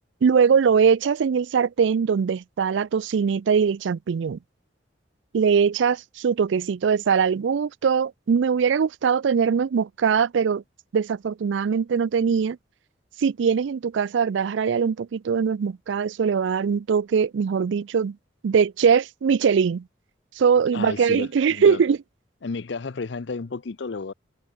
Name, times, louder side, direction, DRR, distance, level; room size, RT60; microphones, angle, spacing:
voice 1, 0.2-4.4 5.3-10.6 10.9-12.6 13.2-18.2 18.4-19.8 20.4-22.0, right 6 dB, 75° right, 0.4 m, -21 dB
voice 2, 20.7-21.8 22.4-24.1, left 4 dB, 65° left, 0.6 m, -32 dB
head